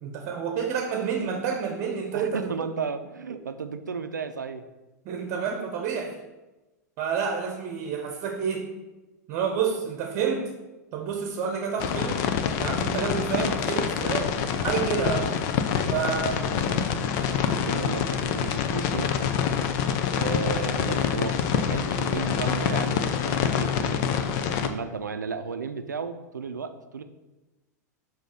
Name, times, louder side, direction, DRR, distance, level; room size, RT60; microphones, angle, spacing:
voice 1, 0.0-2.5 5.0-6.2 7.0-8.7 9.3-10.5 10.9-12.3 12.6-15.3 15.9-16.5, right 6 dB, 45° right, 4 dB, 0.8 m, -29 dB
voice 2, 2.1-4.7 15.0-15.4 15.8-19.2 20.1-27.0, right 5 dB, 85° right, 9 dB, 0.5 m, -34 dB
sound 1, 11.8-24.7, left 7 dB, 50° left, 0.6 m, -26 dB
7.1 x 2.8 x 5.7 m, 1.1 s
figure-of-eight pair, 95°, 9 cm